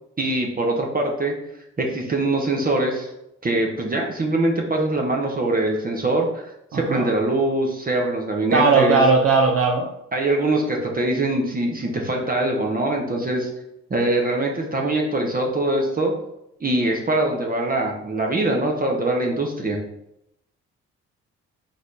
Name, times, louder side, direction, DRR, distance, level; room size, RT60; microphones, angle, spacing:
voice 1, 0.2-1.4 1.8-3.1 3.4-9.0 10.1-13.5 13.9-16.1 16.6-19.8, right 2 dB, 25° right, 0 dB, 1.0 m, -23 dB
voice 2, 6.7-7.1 8.5-9.9, right 4 dB, 40° right, 2 dB, 0.6 m, -18 dB
4.0 x 2.6 x 4.8 m, 0.80 s
hypercardioid pair, 45°, 36 cm